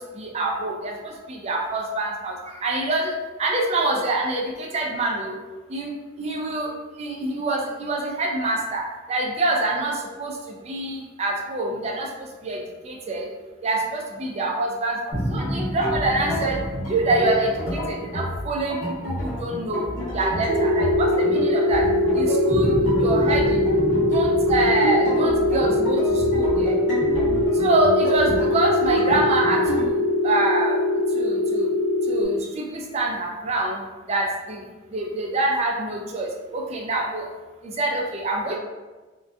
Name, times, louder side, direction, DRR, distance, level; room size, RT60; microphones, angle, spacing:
voice 1, 0.0-3.1 3.4-5.4 5.7-5.9 6.2-6.7 7.0-13.3 13.6-16.6 16.9-21.9 22.1-23.6 24.1-26.8 27.5-30.0 30.2-30.8 31.1-31.7 32.1-33.8 34.1-34.6 34.9-37.3 37.6-38.6, right 2 dB, 35° right, 0 dB, 0.4 m, -26 dB
sound 1, 15.1-29.9, right 1 dB, 45° left, 1.2 m, -29 dB
sound 2, 20.5-32.2, left 1 dB, 85° right, 0.6 m, -22 dB
2.6 x 2.2 x 2.2 m, 1.2 s
head